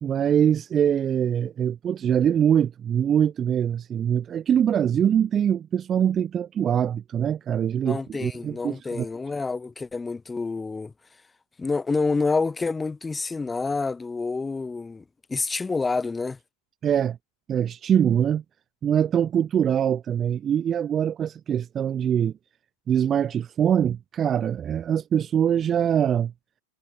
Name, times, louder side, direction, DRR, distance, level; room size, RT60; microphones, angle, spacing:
voice 1, 0.0-9.1 16.8-17.2 17.5-18.4 18.8-22.3 22.9-26.3, right 9 dB, 25° right, 0.4 m, -23 dB
voice 2, 7.8-10.9 11.6-15.0 15.3-16.4, left 4 dB, 10° left, 2.1 m, -28 dB
figure-of-eight pair, 90°, 0 cm